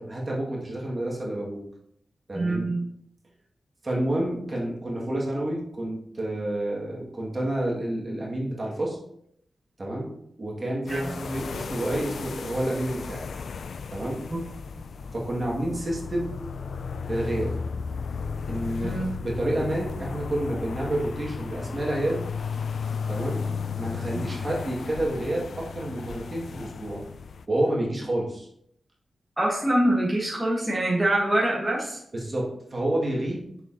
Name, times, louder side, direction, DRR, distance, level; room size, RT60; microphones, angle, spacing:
voice 1, 0.0-1.6 2.3-2.7 3.8-9.0 9.8-10.1 10.4-13.2 13.9-14.2 15.1-16.3 17.1-17.5 18.5-22.2 23.1-23.4 23.8-27.0 27.5-28.5 32.1-33.4, right 1 dB, 35° right, -3 dB, 2.2 m, -29 dB
voice 2, 2.3-2.8 10.9-11.1 14.3-14.4 18.8-19.1 24.1-24.2 29.4-32.0, right 1 dB, 5° right, -5 dB, 1.6 m, -25 dB
sound 1, 10.9-27.4, left 5 dB, 80° left, 0.3 m, -34 dB
6.7 x 6.6 x 3.0 m, 0.70 s
wide cardioid pair, 105°, 0 cm